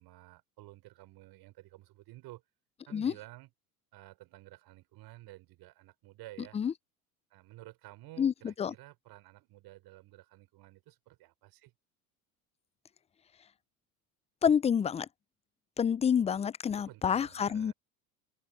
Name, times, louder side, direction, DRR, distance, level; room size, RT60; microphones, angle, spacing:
voice 1, 0.0-2.4 2.9-3.5 3.9-6.6 7.3-11.7 16.8-17.7, right 17 dB, 55° right, 5.2 m, -52 dB
voice 2, 8.2-8.7 14.4-15.1 15.8-17.7, left 7 dB, 15° left, 0.4 m, -28 dB
open air
hypercardioid pair, 80°, 45 cm